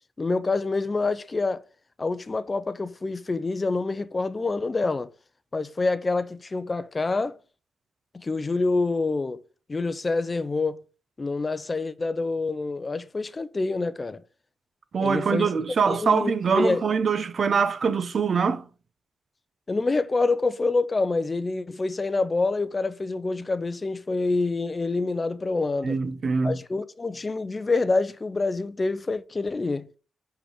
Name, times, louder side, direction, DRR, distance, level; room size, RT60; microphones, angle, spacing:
voice 1, 0.2-1.6 2.0-5.1 5.5-7.4 8.1-9.4 9.7-10.8 11.2-14.2 15.0-15.5 15.9-16.8 19.7-26.0 26.4-29.9, left 3 dB, 30° left, 0.6 m, -26 dB
voice 2, 14.9-18.6 25.8-26.6, right 5 dB, 50° right, 0.8 m, -23 dB
5.1 x 5.0 x 6.1 m
cardioid pair, 85°, 0 cm